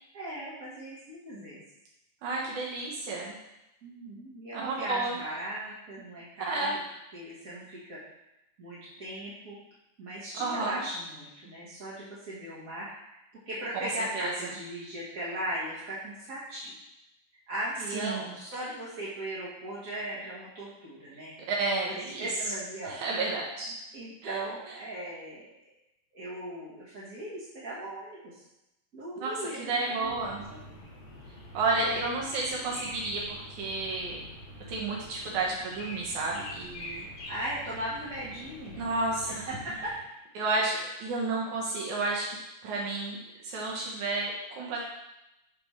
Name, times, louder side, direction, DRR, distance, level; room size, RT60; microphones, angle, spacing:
voice 1, 0.1-1.6 3.8-6.8 7.1-8.0 8.6-9.6 10.0-13.2 13.5-16.7 17.5-21.3 21.8-23.0 23.9-25.5 26.1-28.4 28.9-30.6 31.8-32.0 37.3-38.8 39.3-39.9, right 1 dB, 55° right, -9 dB, 0.9 m, -38 dB
voice 2, 2.2-3.3 4.5-5.2 6.5-6.7 10.3-10.8 14.2-14.3 17.9-18.3 21.5-22.3 22.9-23.7 24.2-24.4 29.2-29.3 29.6-30.4 31.5-34.2 34.7-37.1 38.8-39.4 40.4-42.3 42.6-43.2 43.4-44.8, right 3 dB, 75° right, -3 dB, 2.2 m, -31 dB
sound 1, 30.0-40.0, left 1 dB, 50° left, 1.9 m, -45 dB
10.0 x 3.4 x 3.1 m, 0.91 s
omnidirectional pair, 3.6 m